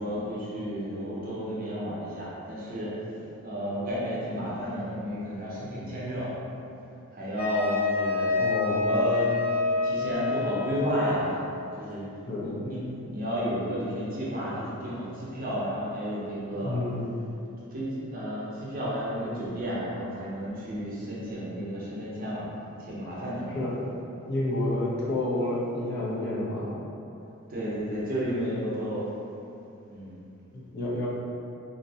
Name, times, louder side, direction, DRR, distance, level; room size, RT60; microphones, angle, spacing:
voice 1, 0.0-3.0 3.4-6.3 7.1-8.3 8.8-9.3 9.8-11.4 11.8-12.1 12.4-16.8 17.7-22.5 22.8-23.5 27.5-29.1 29.9-30.2, equal, 40° right, -7 dB, 0.6 m, -32 dB
Wind instrument woodwind instrument, 7.4-11.2, left 3 dB, 85° left, 0.7 m, -27 dB
voice 2, 8.4-8.9 12.3-12.6 16.4-17.1 23.5-23.8 24.3-26.9 30.5-31.1, left 1 dB, 50° left, -6 dB, 0.5 m, -30 dB
2.6 x 2.1 x 2.7 m, 2.7 s
head